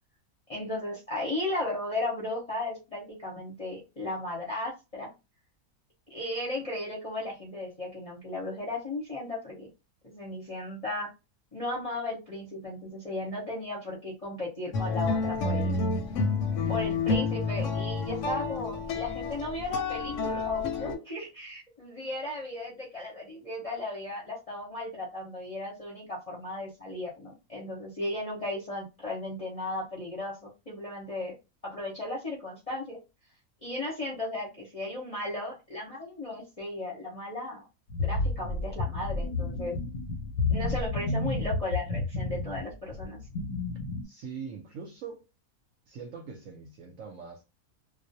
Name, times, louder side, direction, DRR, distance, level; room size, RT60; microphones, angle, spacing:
voice 1, 0.5-5.1 6.1-9.7 10.0-11.1 11.5-15.8 16.7-31.3 31.6-33.0 33.6-37.7 38.0-39.8 40.5-43.2, left 2 dB, 35° left, 0.6 m, -35 dB
sound 1, 14.7-21.0, left 4 dB, 65° left, 0.8 m, -29 dB
sound 2, 37.9-44.1, left 3 dB, 85° left, 1.1 m, -31 dB
voice 2, 44.0-45.3 45.9-47.4, right 6 dB, 70° right, 0.9 m, -42 dB
2.4 x 2.0 x 2.6 m
omnidirectional pair, 1.5 m